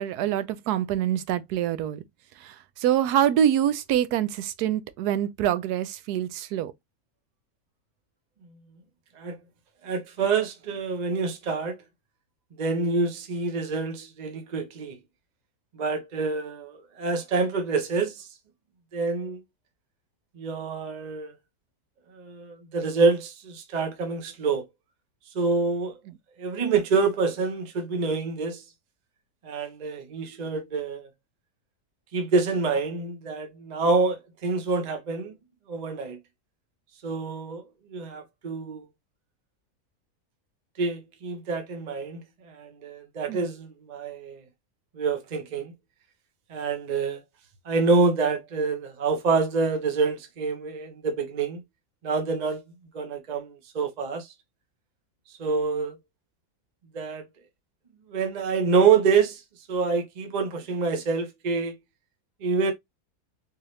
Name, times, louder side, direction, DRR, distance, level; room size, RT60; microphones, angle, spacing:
voice 1, 0.0-2.0 2.4-6.7 43.3-43.5, right 10 dB, 90° right, 1.1 m, -25 dB
voice 2, 9.8-11.8 12.6-15.0 15.7-18.3 18.9-19.4 20.4-21.3 22.1-24.6 25.3-26.0 26.4-28.6 29.4-31.1 32.1-35.3 35.7-36.2 37.0-37.6 37.9-38.9 40.8-44.4 44.9-45.7 46.5-47.2 47.7-51.6 52.0-52.6 52.9-54.3 55.4-55.9 56.9-57.2 58.1-59.4 59.7-61.8 62.4-62.7, right 4 dB, 35° right, 0.7 m, -26 dB
3.8 x 2.7 x 3.2 m
omnidirectional pair, 1.6 m